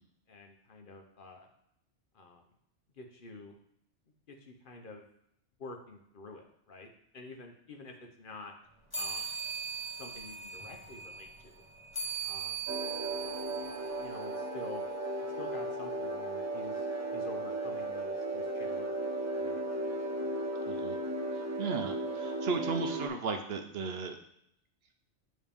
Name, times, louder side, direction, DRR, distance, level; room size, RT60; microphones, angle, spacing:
voice 1, 0.3-1.5 2.1-2.4 3.0-3.5 4.3-5.0 5.6-8.5 8.9-9.3 10.0-11.6 12.2-12.7 14.0-14.8 15.4-16.9 17.1-18.9 19.4-19.6, left 3 dB, 50° left, 3 dB, 0.8 m, -48 dB
sound 1, 8.9-14.7, right 5 dB, 20° left, 1.6 m, -40 dB
sound 2, 12.7-23.1, right 1 dB, 25° right, 0.4 m, -35 dB
voice 2, 21.6-24.2, right 4 dB, 65° right, 5 dB, 0.7 m, -35 dB
9.0 x 3.1 x 3.5 m, 0.75 s
omnidirectional pair, 1.2 m